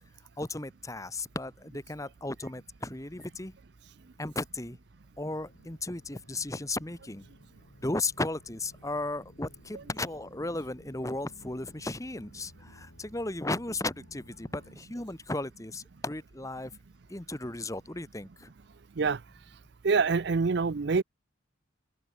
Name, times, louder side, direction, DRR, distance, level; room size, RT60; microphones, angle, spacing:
voice 1, 0.4-3.5 4.2-4.8 5.2-7.2 7.8-16.7 17.1-18.5, left 2 dB, 15° left, 1.3 m, -35 dB
sound 1, 5.5-14.8, left 1 dB, 80° left, 7.1 m, -57 dB
voice 2, 19.8-21.0, right 4 dB, 55° right, 0.5 m, -25 dB
open air
head